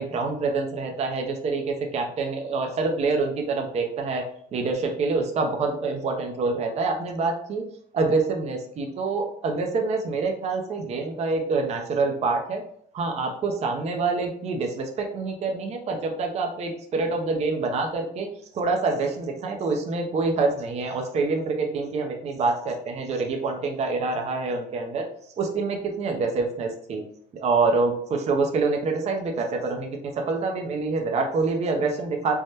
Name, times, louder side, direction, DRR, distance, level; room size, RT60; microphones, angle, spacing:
voice 1, 0.0-4.2 4.5-7.6 7.9-12.6 12.9-18.3 18.5-25.0 25.4-27.0 27.3-32.4, right 3 dB, 40° right, 3 dB, 0.5 m, -26 dB
3.4 x 2.1 x 2.7 m, 0.67 s
cardioid pair, 110°, 17 cm